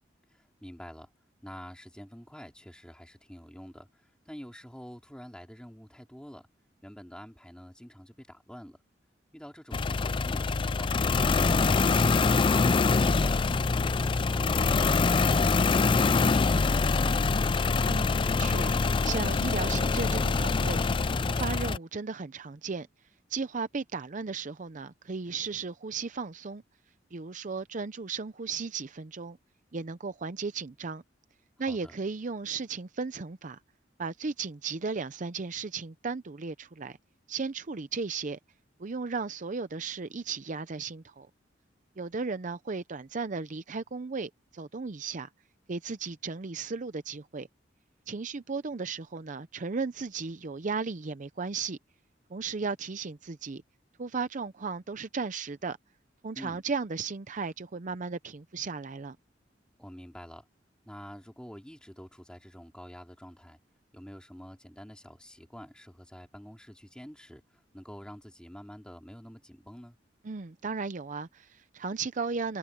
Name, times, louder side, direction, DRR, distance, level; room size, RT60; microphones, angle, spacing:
voice 1, 0.3-1.1 1.4-3.9 4.2-6.5 6.8-8.8 9.3-10.9 31.7-31.9 56.3-56.6 59.8-60.4 60.8-63.6 63.9-70.0, equal, 5° left, 3.0 m, -47 dB
sound 1, 9.7-21.8, left 4 dB, 30° left, 0.4 m, -25 dB
voice 2, 17.8-20.8 21.3-22.9 23.3-26.6 27.1-29.4 29.7-31.0 31.6-33.6 34.0-37.0 37.3-38.4 38.8-41.3 42.0-45.3 45.7-47.5 48.1-51.8 52.3-53.6 54.0-55.8 56.2-59.2 70.2-72.6, right 4 dB, 45° right, 0.6 m, -35 dB
head